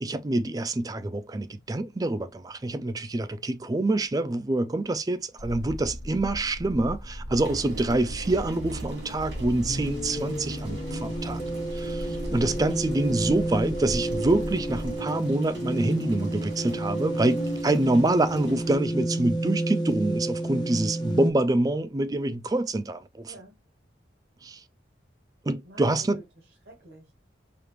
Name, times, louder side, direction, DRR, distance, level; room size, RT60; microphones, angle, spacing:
voice 1, 0.0-11.4 11.7-23.3 24.4-24.6 25.5-26.2, right 2 dB, 20° right, 0.3 m, -26 dB
sound 1, 5.4-15.0, equal, 65° left, 1.1 m, -37 dB
sound 2, 7.3-18.8, right 4 dB, 80° right, 2.2 m, -42 dB
sound 3, 9.7-21.3, right 1 dB, 20° left, 0.7 m, -31 dB
voice 2, 12.3-12.6 20.4-21.2 23.2-23.6 25.6-27.1, right 2 dB, 55° right, 1.0 m, -50 dB
4.9 x 2.4 x 3.0 m
head